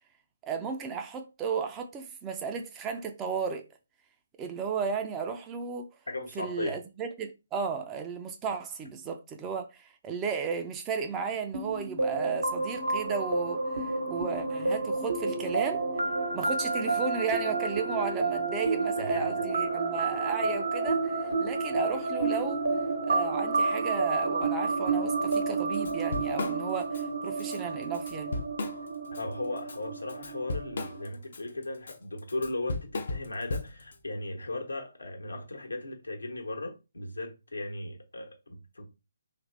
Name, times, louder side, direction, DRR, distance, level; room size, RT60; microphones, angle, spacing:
voice 1, 0.4-3.6 4.4-5.9 6.4-15.8 16.3-22.6 23.1-28.4, right 6 dB, 15° right, 0.4 m, -34 dB
voice 2, 6.1-6.8 19.0-19.3 29.1-38.8, left 2 dB, 75° left, 1.1 m, -37 dB
sound 1, 11.5-31.1, right 3 dB, 65° right, 0.8 m, -30 dB
Drum kit / Drum, 25.3-25.4 25.7-27.0 27.4-27.6 27.9-29.2 29.6-34.0, left 3 dB, 50° left, 0.6 m, -36 dB
3.1 x 2.5 x 3.2 m
figure-of-eight pair, 140°, 0 cm